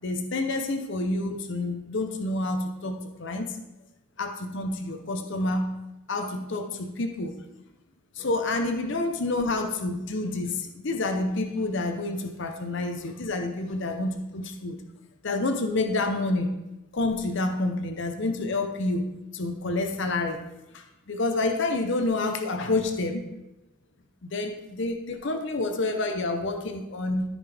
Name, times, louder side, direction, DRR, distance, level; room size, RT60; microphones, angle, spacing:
voice 1, 0.0-3.6 4.2-5.8 6.1-7.3 8.2-14.8 15.2-16.6 16.9-20.4 20.7-23.2 24.2-27.2, left 2 dB, 55° left, 5 dB, 0.7 m, -28 dB
13.5 x 5.2 x 3.5 m, 0.98 s
head